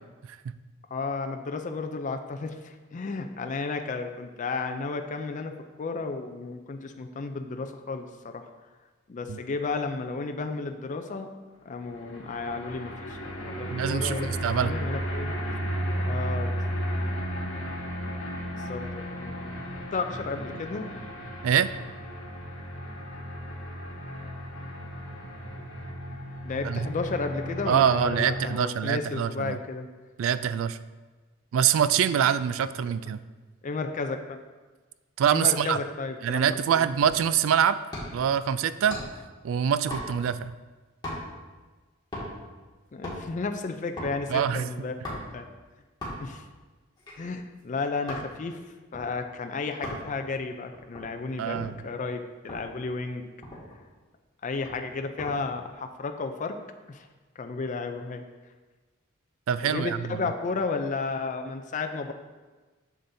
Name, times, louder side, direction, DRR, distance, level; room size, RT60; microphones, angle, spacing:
voice 1, 0.9-5.5 5.8-8.5 9.1-11.3 11.6-15.3 15.8-16.6 18.6-19.5 19.9-20.8 26.4-29.9 33.6-34.4 35.3-36.9 42.9-45.5 46.2-46.4 47.2-48.6 48.9-51.6 51.8-53.2 54.4-56.6 56.9-57.1 57.4-58.2 59.6-62.1, left 4 dB, 40° left, 6 dB, 0.4 m, -33 dB
sound 1, 11.7-28.5, equal, 75° left, 1.5 m, -34 dB
voice 2, 13.7-14.7 21.4-21.7 26.6-26.9 27.7-29.6 30.2-30.8 31.5-33.2 35.2-35.8 36.2-37.8 38.1-39.0 39.4-40.5 44.3-44.7 51.4-51.7 59.5-60.2, right 8 dB, 75° right, 14 dB, 0.3 m, -24 dB
sound 2, 37.0-37.3 37.9-38.3 38.9-39.3 39.9-40.4 41.0-41.4 42.1-42.5 42.9-43.3 44.0-44.2 45.0-45.4 46.0-46.4 47.0-48.3 48.9-49.1 49.8-50.1 50.7-51.8 52.5-52.7 53.1-53.2 53.4-53.8 54.6-55.3 55.7-56.0, left 1 dB, 20° left, 2.0 m, -38 dB
7.3 x 7.0 x 2.7 m, 1.3 s
head